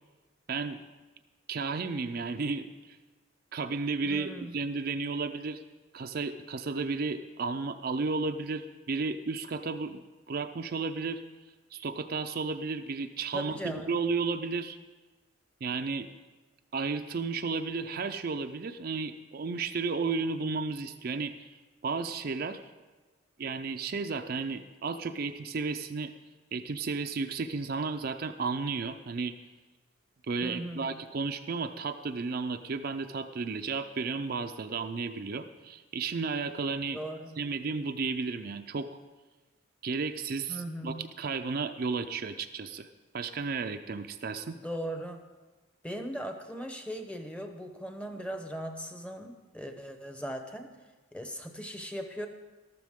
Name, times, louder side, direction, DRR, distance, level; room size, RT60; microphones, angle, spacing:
voice 1, 0.5-0.8 1.5-3.0 3.5-5.6 5.9-11.2 11.7-14.8 15.6-16.1 16.7-21.6 21.8-22.6 23.4-26.1 26.5-29.3 30.3-37.0 37.4-39.0 39.8-42.9 43.1-44.6, right 4 dB, 45° right, 7 dB, 0.4 m, -33 dB
voice 2, 4.0-4.5 13.3-14.0 30.4-30.9 36.9-37.4 40.5-41.0 44.6-45.3 45.8-50.7 51.1-52.3, equal, 5° left, 5 dB, 0.8 m, -38 dB
13.5 x 12.5 x 3.6 m, 1.2 s
head